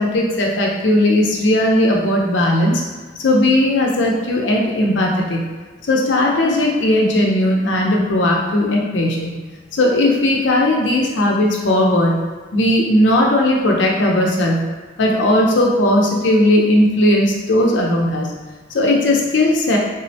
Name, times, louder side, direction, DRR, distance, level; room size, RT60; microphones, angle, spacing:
voice 1, 0.0-2.8 3.2-5.5 5.9-9.4 9.7-12.3 12.5-14.7 15.0-18.3 18.7-19.8, left 1 dB, 70° left, -1 dB, 0.6 m, -17 dB
3.7 x 2.1 x 2.7 m, 1.4 s
head